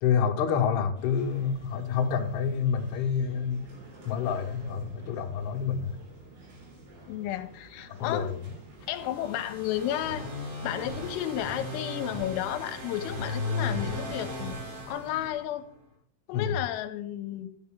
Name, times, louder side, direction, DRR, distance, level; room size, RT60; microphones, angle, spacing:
voice 1, 0.0-3.7 4.0-6.0 7.9-8.4 16.3-16.6, left 7 dB, 65° left, 1 dB, 2.8 m, -28 dB
sound 1, 0.9-15.3, right 2 dB, 60° right, 5.9 m, -50 dB
voice 2, 7.1-8.3 8.9-10.3 10.6-14.6 14.9-15.7 16.3-17.5, left 12 dB, 85° left, 7 dB, 3.3 m, -32 dB
sound 2, 8.8-15.7, left 2 dB, 85° right, 7.1 m, -36 dB
12.0 x 9.6 x 3.7 m, 0.63 s
omnidirectional pair, 6.0 m